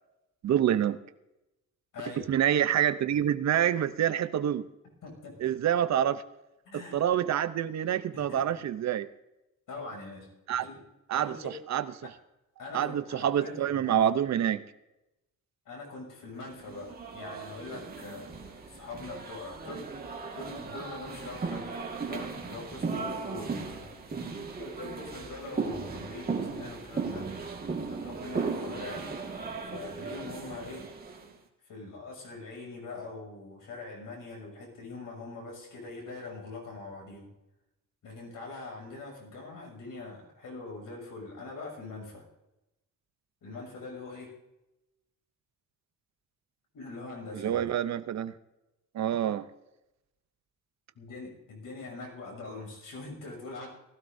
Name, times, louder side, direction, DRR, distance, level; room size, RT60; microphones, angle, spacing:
voice 1, 0.4-1.0 2.3-4.7 5.4-6.2 6.7-9.1 10.5-10.7 11.1-11.9 12.7-14.6 47.3-48.3 48.9-49.5, right 10 dB, 55° right, 13 dB, 0.7 m, -27 dB
voice 2, 1.9-2.2 5.0-5.5 6.6-7.0 8.1-8.4 9.7-10.3 10.6-10.8 11.1-11.5 12.0-12.1 12.6-14.1 15.6-19.9 20.3-21.7 22.1-23.9 24.2-27.3 27.9-29.2 29.6-30.8 31.6-37.3 38.0-42.2 43.4-44.3 46.7-47.6 50.9-53.7, left 3 dB, 70° left, 0 dB, 6.6 m, -43 dB
sound 1, 16.6-31.3, right 4 dB, 25° right, 1.8 m, -37 dB
19.5 x 16.0 x 2.7 m, 0.94 s
wide cardioid pair, 180°, 33 cm